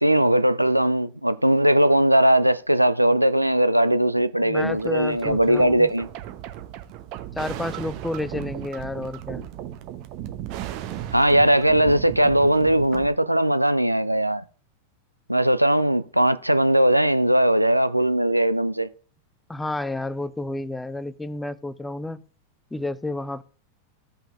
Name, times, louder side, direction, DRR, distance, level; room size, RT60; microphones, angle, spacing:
voice 1, 0.0-6.1 11.1-14.4 15.3-18.9, right 1 dB, 90° right, 0.4 m, -19 dB
voice 2, 4.4-5.9 7.3-9.5 19.5-22.2 22.7-23.4, left 2 dB, 5° left, 0.4 m, -31 dB
sound 1, 4.6-13.1, right 12 dB, 45° right, 0.8 m, -36 dB
15.5 x 5.6 x 2.5 m
figure-of-eight pair, 90°, 0 cm